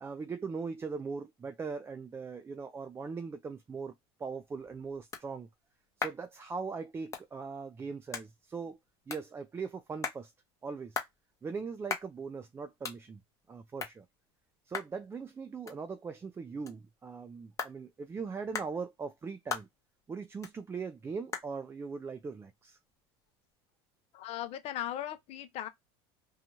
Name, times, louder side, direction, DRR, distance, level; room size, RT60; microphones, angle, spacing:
voice 1, 0.0-3.9 4.2-5.5 6.0-8.8 9.1-10.3 10.6-11.0 11.4-13.2 13.5-14.1 14.7-19.7 20.1-22.8, right 5 dB, 20° right, 0.4 m, -40 dB
sound 1, 4.2-23.5, left 5 dB, 25° left, 0.8 m, -45 dB
voice 2, 24.1-25.7, left 12 dB, 50° left, 0.6 m, -38 dB
2.6 x 2.3 x 2.8 m
supercardioid pair, 95°, 14 cm